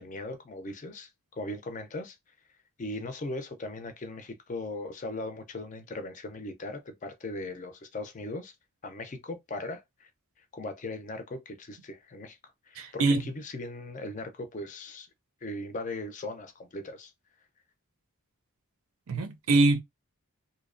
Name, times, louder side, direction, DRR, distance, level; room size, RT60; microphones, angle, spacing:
voice 1, 0.0-2.2 2.8-8.5 8.8-10.1 10.4-13.0 13.3-15.1 15.4-17.1, left 2 dB, 35° left, 0.4 m, -39 dB
voice 2, 12.8-13.2 19.1-19.8, right 2 dB, 75° right, 0.5 m, -24 dB
2.6 x 2.0 x 2.4 m
head